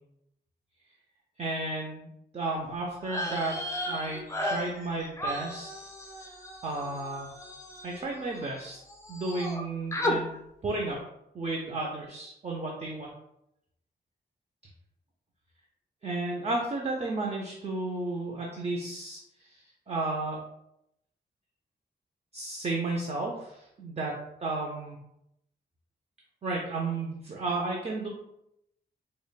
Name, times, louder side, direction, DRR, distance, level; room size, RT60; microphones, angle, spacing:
voice 1, 1.4-2.1 2.3-3.6 3.9-5.7 6.6-7.3 7.8-8.8 9.1-10.3 10.6-11.0 11.3-13.1 16.0-20.4 22.3-25.0 26.4-28.1, right 2 dB, 40° right, -1 dB, 0.5 m, -33 dB
sound 1, 3.0-8.6 8.9-9.6 9.9-10.2, left 1 dB, 15° left, 0.4 m, -35 dB
4.8 x 2.1 x 2.3 m, 0.81 s
wide cardioid pair, 130°, 18 cm